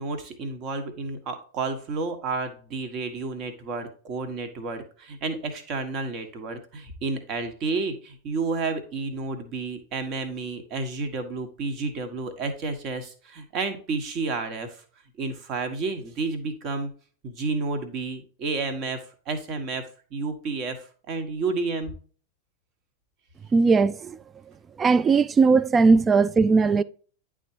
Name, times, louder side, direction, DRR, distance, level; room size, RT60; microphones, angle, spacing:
voice 1, 0.0-14.8 15.2-16.9 17.2-19.8 20.1-21.9, right 3 dB, 35° right, 1.3 m, -31 dB
voice 2, 23.5-24.2 24.8-26.8, right 4 dB, 20° right, 0.3 m, -19 dB
10.5 x 3.6 x 2.9 m
figure-of-eight pair, 90°, 0 cm